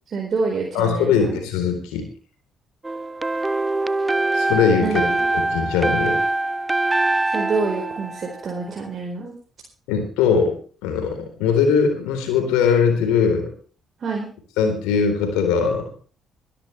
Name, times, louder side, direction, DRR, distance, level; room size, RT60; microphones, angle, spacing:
voice 1, 0.1-1.4 4.8-5.1 7.3-9.4 14.0-14.3, right 4 dB, 50° right, 0 dB, 4.5 m, -27 dB
voice 2, 0.7-2.0 4.3-4.9 5.3-6.2 9.9-10.6 10.8-13.5 14.6-15.8, left 6 dB, 80° left, 5 dB, 3.9 m, -20 dB
sound 1, 2.8-8.8, right 2 dB, 20° right, 0.8 m, -23 dB
22.0 x 11.5 x 3.4 m, 0.40 s
hypercardioid pair, 50°, 0 cm